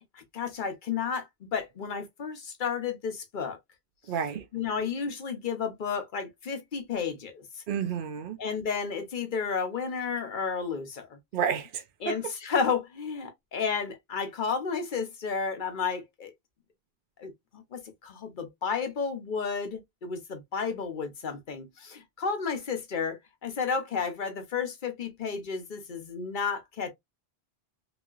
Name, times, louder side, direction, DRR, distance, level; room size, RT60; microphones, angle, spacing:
voice 1, 0.1-3.6 4.5-7.6 8.4-11.2 12.0-16.3 17.2-26.9, left 5 dB, 50° left, 0.9 m, -32 dB
voice 2, 4.1-4.4 7.7-8.4 11.3-12.2, right 7 dB, 55° right, 0.7 m, -30 dB
3.1 x 2.8 x 2.4 m
omnidirectional pair, 1.1 m